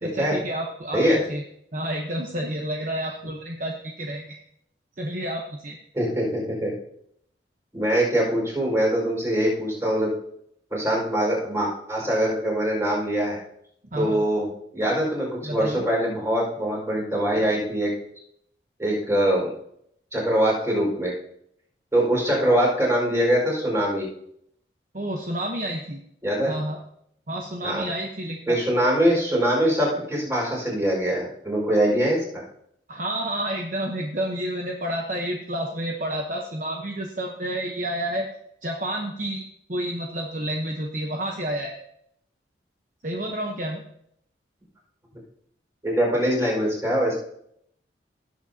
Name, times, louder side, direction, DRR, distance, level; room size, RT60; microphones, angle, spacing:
voice 1, 0.0-1.0 1.3-1.4 1.7-4.4 5.0-5.8 13.9-14.2 15.4-15.8 24.9-26.0 26.5-26.8 27.3-28.6 32.9-38.3 38.6-39.4 39.7-41.7 43.0-43.8, right 1 dB, 45° right, 1 dB, 1.0 m, -30 dB
voice 2, 5.9-6.7 7.7-10.1 10.7-13.4 13.9-14.5 14.7-17.9 18.8-19.5 20.1-21.1 21.9-24.1 26.2-26.5 27.6-27.8 28.5-32.2 45.8-47.1, equal, 15° right, -3 dB, 5.0 m, -23 dB
17.0 x 7.7 x 2.8 m, 0.71 s
head